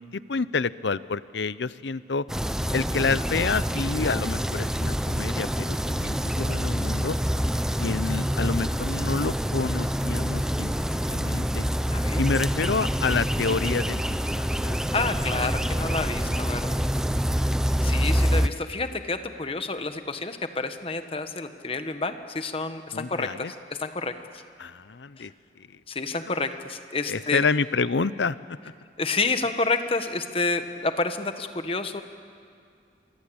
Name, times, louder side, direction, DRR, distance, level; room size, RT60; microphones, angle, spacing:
voice 1, 0.0-2.2 2.7-7.2 7.8-10.7 11.1-11.7 12.2-14.0 14.4-14.8 22.9-23.5 24.6-25.3 26.3-26.5 27.1-28.4, left 4 dB, 85° left, 17 dB, 0.7 m, -28 dB
sound 1, 2.3-18.5, equal, 5° right, 0.7 m, -26 dB
voice 2, 11.9-12.2 14.9-16.8 17.8-24.1 25.9-27.4 29.0-32.0, left 3 dB, 30° left, 8 dB, 1.4 m, -29 dB
28.0 x 23.5 x 8.7 m, 2.3 s
head